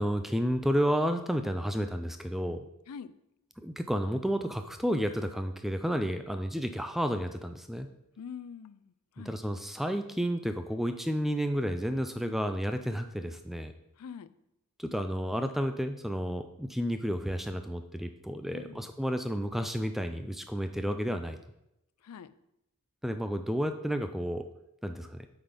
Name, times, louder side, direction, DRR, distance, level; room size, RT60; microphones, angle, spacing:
voice 1, 0.0-2.6 3.6-7.9 9.3-13.7 14.8-21.4 23.0-24.5 24.8-25.3, equal, ahead, 7 dB, 0.3 m, -31 dB
voice 2, 8.2-9.4 14.0-14.4 18.5-18.9 22.0-22.3, left 7 dB, 80° left, 15 dB, 0.4 m, -45 dB
8.1 x 4.0 x 5.1 m, 0.84 s
head